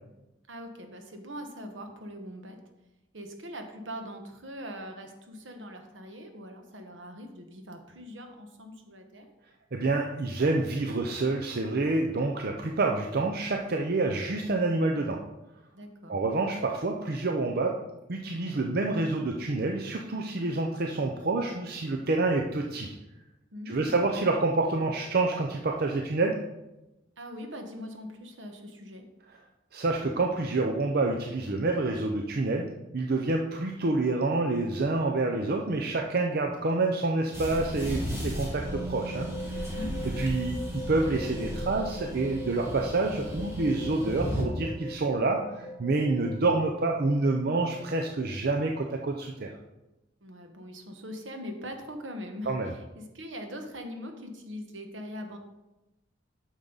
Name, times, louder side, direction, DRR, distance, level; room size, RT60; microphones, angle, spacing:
voice 1, 0.5-2.6 3.1-9.3 15.7-16.2 23.5-24.0 27.2-29.1 39.5-40.0 50.2-55.4, equal, 75° right, 5 dB, 1.3 m, -42 dB
voice 2, 9.7-15.2 16.1-17.8 18.1-22.9 23.7-26.4 29.7-39.3 40.2-49.5 52.5-52.7, right 3 dB, 55° right, 2 dB, 0.6 m, -28 dB
sound 1, 37.3-44.4, equal, 15° right, 1.8 m, -35 dB
sound 2, 38.6-47.7, equal, 55° left, 2.6 m, -40 dB
9.0 x 6.4 x 4.0 m, 0.98 s
head